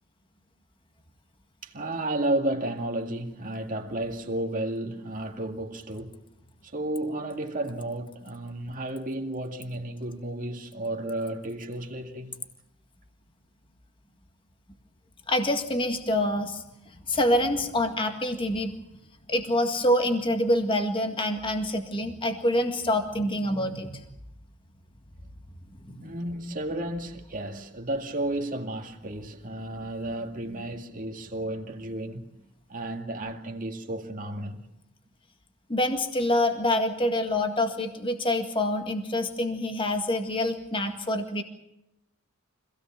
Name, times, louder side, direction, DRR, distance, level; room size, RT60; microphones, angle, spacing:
voice 1, 1.6-6.2 6.6-12.4 26.0-32.3 32.7-34.6, right 1 dB, 35° right, 2.2 m, -32 dB
voice 2, 15.3-16.6 17.1-18.8 19.3-24.1 25.9-26.0 35.7-41.4, left 1 dB, 25° left, 1.9 m, -26 dB
25.5 x 17.0 x 7.5 m
head